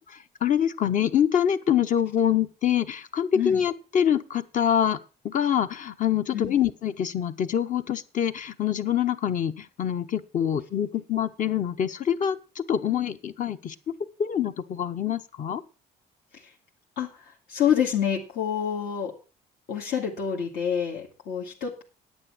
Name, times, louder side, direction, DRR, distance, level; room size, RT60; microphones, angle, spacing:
voice 1, 0.4-5.0 5.2-13.7 14.2-15.6, left 9 dB, 50° left, 10 dB, 1.0 m, -25 dB
voice 2, 17.0-19.1 19.7-21.8, left 8 dB, 75° left, -1 dB, 2.2 m, -27 dB
9.9 x 9.0 x 6.2 m, 0.34 s
cardioid pair, 110°, 17 cm